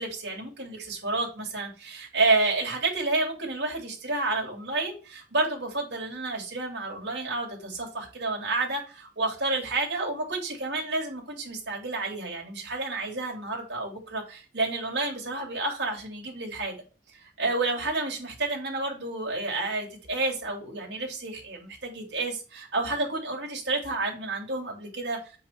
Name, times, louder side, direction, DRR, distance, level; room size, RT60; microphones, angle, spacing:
voice 1, 0.0-16.7 17.2-25.2, right 2 dB, 65° right, 0 dB, 2.6 m, -30 dB
7.6 x 3.7 x 4.4 m, 0.35 s
head